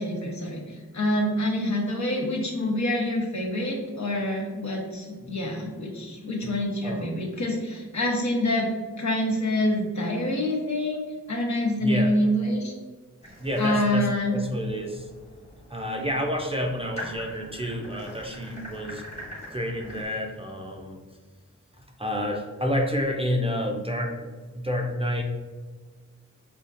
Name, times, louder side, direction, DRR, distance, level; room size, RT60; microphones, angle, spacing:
voice 1, 0.0-8.7 9.0-12.7 13.6-14.4, left 1 dB, 60° left, -1 dB, 0.9 m, -26 dB
voice 2, 11.8-12.1 13.4-15.1 15.7-19.0 19.5-21.0 22.0-24.3 24.5-25.2, equal, 20° right, 1 dB, 0.4 m, -29 dB
sound 1, 13.2-20.0, equal, 20° left, 1.3 m, -43 dB
5.1 x 2.4 x 2.5 m, 1.4 s
wide cardioid pair, 80°, 32 cm